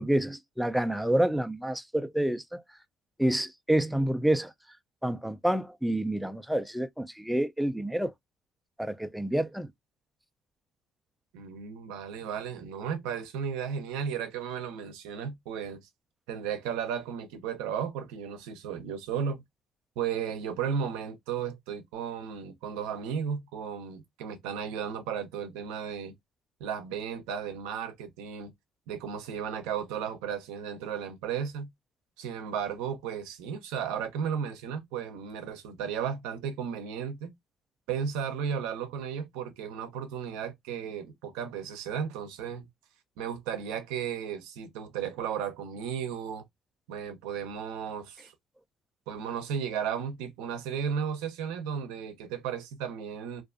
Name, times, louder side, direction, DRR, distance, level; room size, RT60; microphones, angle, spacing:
voice 1, 0.0-2.6 3.2-4.5 5.0-8.1 8.8-9.7, right 1 dB, ahead, 0.3 m, -28 dB
voice 2, 11.3-15.9 16.3-19.4 20.0-26.1 26.6-28.5 28.9-31.7 32.2-37.3 37.9-42.7 43.2-46.4 46.9-48.3 49.1-53.4, right 7 dB, 90° right, 0.5 m, -34 dB
2.4 x 2.3 x 2.4 m
supercardioid pair, 75°, 0 cm